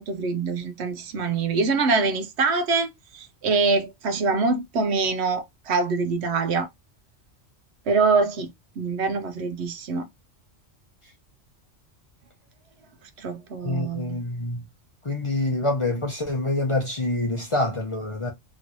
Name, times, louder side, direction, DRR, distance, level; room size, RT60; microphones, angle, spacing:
voice 1, 0.0-6.7 7.9-8.5 8.8-10.1 13.2-14.2, right 4 dB, 65° right, 0.8 m, -24 dB
voice 2, 13.6-14.6 15.0-18.3, left 2 dB, 30° left, 0.6 m, -26 dB
3.0 x 2.9 x 2.6 m
omnidirectional pair, 1.3 m